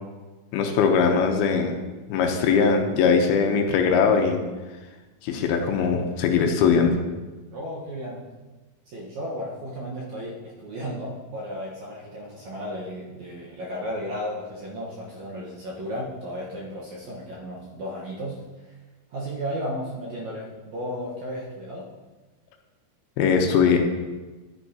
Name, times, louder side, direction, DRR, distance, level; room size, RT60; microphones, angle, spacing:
voice 1, 0.5-1.8 2.1-4.4 5.2-7.0 23.2-23.8, left 5 dB, 80° left, 4 dB, 2.6 m, -20 dB
voice 2, 7.5-8.3 8.9-18.8 19.1-21.9, equal, 65° right, -5 dB, 2.0 m, -34 dB
11.0 x 9.0 x 2.8 m, 1.2 s
omnidirectional pair, 4.6 m